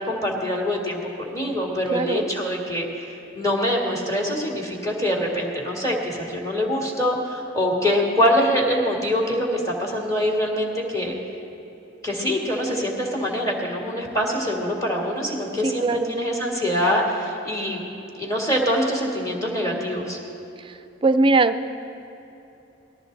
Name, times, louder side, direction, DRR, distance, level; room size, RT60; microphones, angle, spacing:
voice 1, 0.1-3.0 3.3-11.1 12.0-17.8 18.2-20.2, equal, 15° left, -2 dB, 2.0 m, -24 dB
voice 2, 1.9-2.3 15.6-16.2 21.0-21.6, right 3 dB, 25° right, 11 dB, 0.4 m, -20 dB
19.0 x 13.0 x 4.0 m, 3.0 s
head